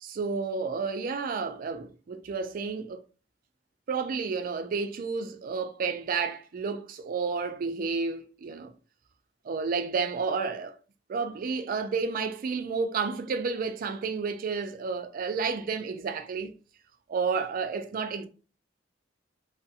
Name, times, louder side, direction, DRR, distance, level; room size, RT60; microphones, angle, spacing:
voice 1, 0.0-3.0 3.9-8.7 9.4-10.8 11.1-16.5 17.1-18.3, right 5 dB, 50° right, 0.4 m, -31 dB
2.5 x 2.0 x 2.6 m
head